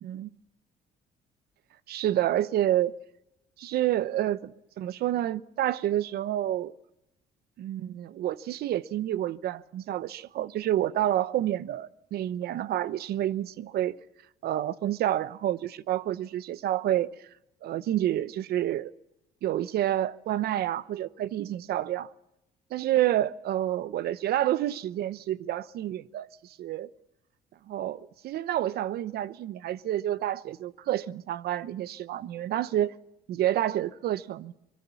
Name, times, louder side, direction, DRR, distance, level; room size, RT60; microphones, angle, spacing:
voice 1, 1.9-2.9 3.6-6.7 7.6-14.0 14.4-17.1 17.6-18.9 19.4-22.1 22.7-26.3 26.6-26.9 27.7-33.0 33.3-34.5, right 12 dB, 70° right, 0.9 m, -29 dB
24.0 x 23.0 x 7.1 m
cardioid pair, 110°, 17 cm